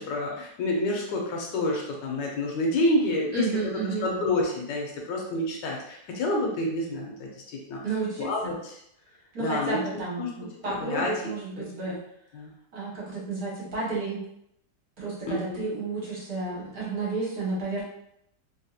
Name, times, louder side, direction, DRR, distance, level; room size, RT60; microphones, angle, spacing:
voice 1, 0.0-3.7 4.0-7.3 7.7-7.8 8.2-8.8 9.4-9.8 10.2-10.3 10.7-11.1 11.6-12.0 12.3-12.5 15.3-15.6, left 1 dB, 80° left, -1 dB, 1.4 m, -28 dB
voice 2, 3.3-4.1 7.8-8.3 9.3-12.0 12.7-14.2 15.0-17.8, right 3 dB, 55° right, -7 dB, 1.5 m, -31 dB
3.4 x 2.7 x 2.4 m, 0.74 s
omnidirectional pair, 2.0 m